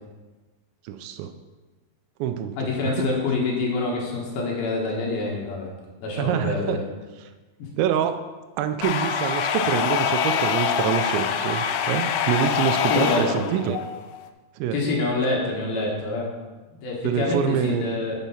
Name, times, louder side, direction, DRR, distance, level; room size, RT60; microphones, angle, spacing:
voice 1, 0.9-1.3 2.2-3.1 6.2-6.8 7.8-8.2 8.6-13.8 14.6-14.8 17.0-17.9, right 9 dB, 85° right, 9 dB, 2.8 m, -26 dB
voice 2, 2.6-5.7 6.0-6.8 7.6-7.7 12.9-13.4 14.7-16.3 16.8-18.2, left 3 dB, 65° left, -2 dB, 2.8 m, -26 dB
sound 1, 8.8-14.3, left 8 dB, 80° left, 2.4 m, -25 dB
7.3 x 7.1 x 5.6 m, 1.2 s
omnidirectional pair, 5.2 m